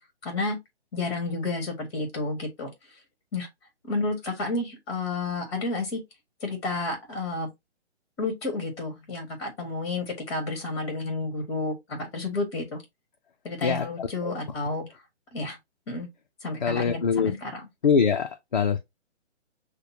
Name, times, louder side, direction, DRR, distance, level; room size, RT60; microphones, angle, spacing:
voice 1, 0.2-0.6 0.9-2.7 3.3-3.5 3.8-6.0 6.4-7.5 8.2-12.8 13.4-14.8 15.3-15.6 15.9-16.1 16.4-17.7, left 2 dB, 25° left, 1.6 m, -31 dB
voice 2, 16.6-17.3 17.8-18.8, left 6 dB, 45° left, 0.5 m, -23 dB
6.4 x 2.2 x 2.7 m
hypercardioid pair, 170°, 34 cm